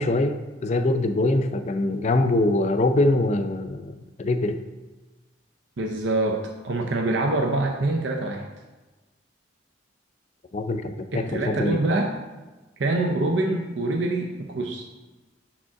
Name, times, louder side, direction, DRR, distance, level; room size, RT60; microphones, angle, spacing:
voice 1, 0.0-4.6 10.5-11.8, left 2 dB, 35° left, 8 dB, 0.4 m, -23 dB
voice 2, 5.8-8.4 11.1-12.1 12.8-14.8, right 2 dB, 65° right, 1 dB, 0.6 m, -25 dB
5.1 x 3.6 x 5.7 m, 1.2 s
head